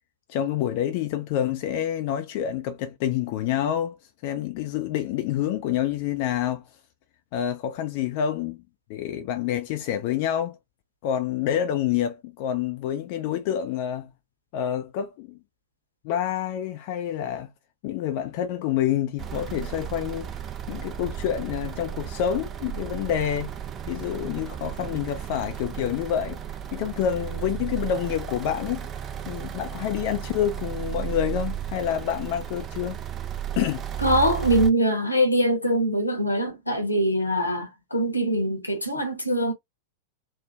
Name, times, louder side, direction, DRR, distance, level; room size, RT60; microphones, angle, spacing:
voice 1, 0.3-4.0 4.2-6.7 7.3-8.6 8.9-10.6 11.0-14.1 14.5-15.4 16.0-17.5 17.8-20.3 20.7-23.5 23.9-26.4 26.7-28.9 29.3-33.0 33.6-33.9, left 10 dB, 45° left, 0.4 m, -27 dB
sound 1, 19.2-34.7, right 10 dB, 25° right, 0.4 m, -34 dB
voice 2, 34.0-39.5, right 1 dB, 85° left, 1.0 m, -23 dB
3.4 x 2.1 x 3.2 m
figure-of-eight pair, 90°, 0 cm